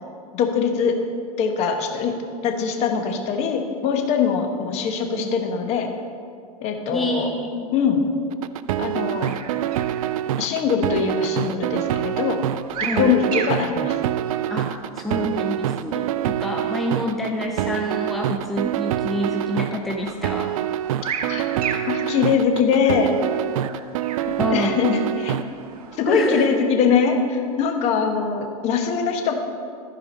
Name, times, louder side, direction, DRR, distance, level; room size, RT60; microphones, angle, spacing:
voice 1, 0.3-1.0 1.4-2.1 2.4-5.9 6.6-7.3 7.7-8.0 8.8-9.3 10.4-12.4 13.0-14.0 21.3-21.4 21.8-23.1 24.5-25.4 26.0-29.4, left 6 dB, 35° left, 4 dB, 1.1 m, -22 dB
voice 2, 6.9-7.7 12.8-13.1 14.5-20.5 24.4-24.7 26.1-26.5, equal, ahead, 0 dB, 0.5 m, -27 dB
sound 1, 8.3-25.4, right 12 dB, 65° right, 0.4 m, -26 dB
sound 2, 8.6-26.3, right 7 dB, 85° right, 0.9 m, -37 dB
14.0 x 4.9 x 5.3 m, 2.3 s
supercardioid pair, 140°, 19 cm